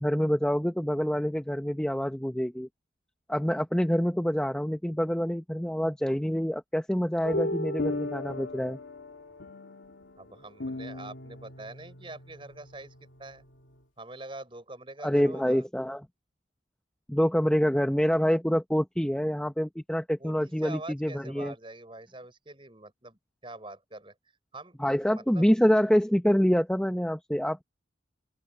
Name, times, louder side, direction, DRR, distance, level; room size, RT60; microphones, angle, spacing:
voice 1, 0.0-2.7 3.3-8.8 15.0-16.1 17.1-21.5 24.8-27.6, equal, 5° left, 0.7 m, -26 dB
sound 1, 7.2-13.8, left 1 dB, 75° left, 2.7 m, -37 dB
voice 2, 10.2-13.4 14.0-15.7 20.2-24.1 24.5-24.8 25.1-25.5, right 2 dB, 25° right, 6.0 m, -44 dB
open air
head